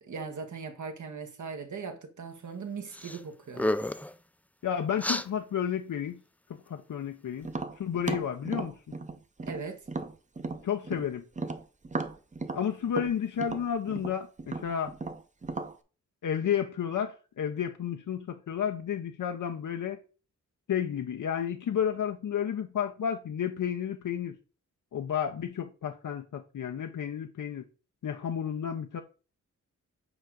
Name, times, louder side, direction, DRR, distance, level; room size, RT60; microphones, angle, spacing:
voice 1, 0.0-3.7 9.5-9.8, right 5 dB, 75° right, 1.3 m, -39 dB
sound 1, 2.9-3.2 3.5-4.1 5.0-5.3, left 1 dB, 5° left, 0.3 m, -30 dB
voice 2, 4.6-6.2 6.5-7.5 7.8-8.9 10.6-11.2 12.5-14.9 16.2-20.0 20.7-24.4 24.9-27.6 28.0-29.0, left 8 dB, 80° left, 0.7 m, -31 dB
Tap, 7.4-11.1 11.4-15.7, right 3 dB, 25° right, 0.7 m, -36 dB
7.9 x 4.5 x 3.9 m
wide cardioid pair, 100°, 30 cm